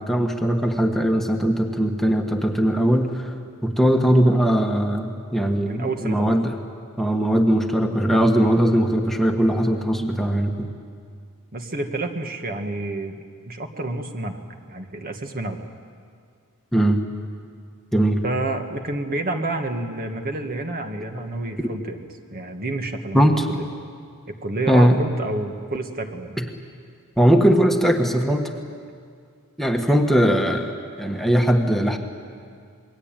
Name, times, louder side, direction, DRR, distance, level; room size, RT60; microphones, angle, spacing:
voice 1, 0.0-3.3 3.6-6.5 7.0-10.7 16.7-17.0 17.9-18.2 21.6-21.7 23.1-23.5 24.7-25.0 26.4-26.5 27.2-28.5 29.6-30.7 31.0-32.0, equal, ahead, 2 dB, 1.4 m, -19 dB
voice 2, 5.7-6.3 11.5-14.4 14.7-15.6 18.2-22.0 22.3-23.7 24.3-26.4, right 2 dB, 45° right, 5 dB, 1.8 m, -29 dB
27.5 x 22.0 x 9.0 m, 2.2 s
head